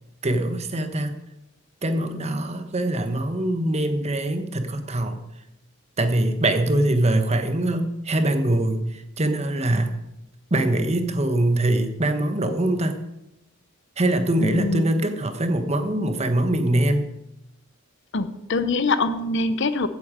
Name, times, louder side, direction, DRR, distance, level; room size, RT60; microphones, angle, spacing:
voice 1, 0.2-1.2 1.8-5.2 6.0-10.0 10.5-13.0 14.0-17.1, right 1 dB, 35° right, 8 dB, 1.1 m, -23 dB
voice 2, 14.4-14.9 18.1-19.9, left 3 dB, 60° left, 12 dB, 0.8 m, -24 dB
15.0 x 8.5 x 5.1 m, 0.89 s
head